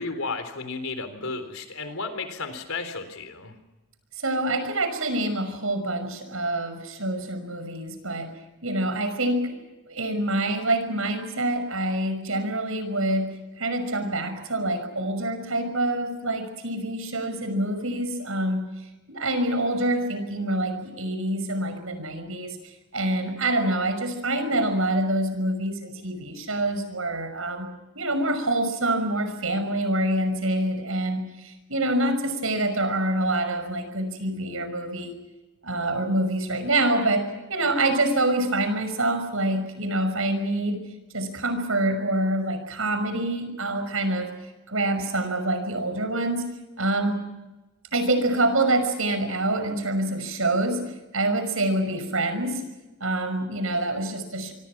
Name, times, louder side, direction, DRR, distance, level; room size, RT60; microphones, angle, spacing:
voice 1, 0.0-3.5, left 3 dB, 80° left, 9 dB, 3.9 m, -33 dB
voice 2, 4.2-8.3 8.6-9.6 9.9-18.7 19.1-35.1 35.6-40.8 41.1-44.3 44.7-46.4 46.8-47.2 47.9-50.8 51.1-52.6 53.0-54.5, right 1 dB, 75° right, 8 dB, 5.9 m, -26 dB
25.5 x 25.0 x 6.1 m, 1.1 s
head